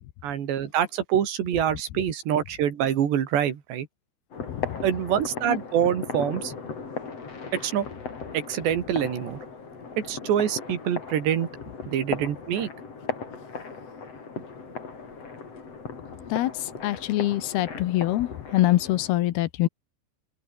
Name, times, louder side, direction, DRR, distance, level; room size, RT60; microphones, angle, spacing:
voice 1, 0.2-3.9 4.8-6.5 7.6-7.9 8.3-9.4 10.0-11.5 11.9-12.7, right 9 dB, 85° right, 4.8 m, -25 dB
sound 1, 4.3-19.1, left 4 dB, 35° left, 5.1 m, -37 dB
voice 2, 4.5-4.8 5.5-5.6 16.3-16.5 16.8-19.7, left 15 dB, 75° left, 2.9 m, -24 dB
omnidirectional pair, 4.8 m